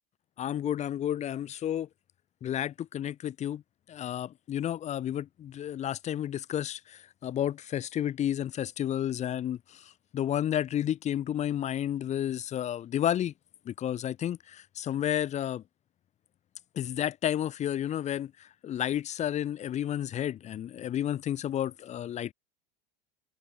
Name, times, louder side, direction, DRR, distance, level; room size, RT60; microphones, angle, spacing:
voice 1, 0.4-1.9 2.4-3.6 3.9-13.3 13.7-15.6 16.7-22.3, left 11 dB, 35° left, 0.8 m, -31 dB
supercardioid pair, 110°, 20 cm